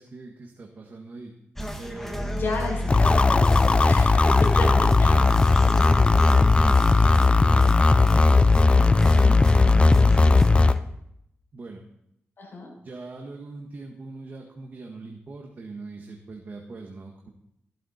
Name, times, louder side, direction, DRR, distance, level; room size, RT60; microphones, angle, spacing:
voice 1, 0.0-1.4 1.8-2.4 4.2-4.4 4.6-7.8 8.7-10.7 11.5-11.9 12.8-17.3, right 3 dB, 45° right, 2 dB, 1.7 m, -41 dB
sound 1, 1.6-10.8, left 1 dB, 5° left, 1.6 m, -32 dB
voice 2, 2.3-5.2 12.4-12.7, left 2 dB, 55° left, -1 dB, 5.8 m, -32 dB
sound 2, 2.9-10.7, left 3 dB, 25° left, 0.5 m, -17 dB
15.5 x 12.0 x 4.4 m, 0.77 s
wide cardioid pair, 120°, 4 cm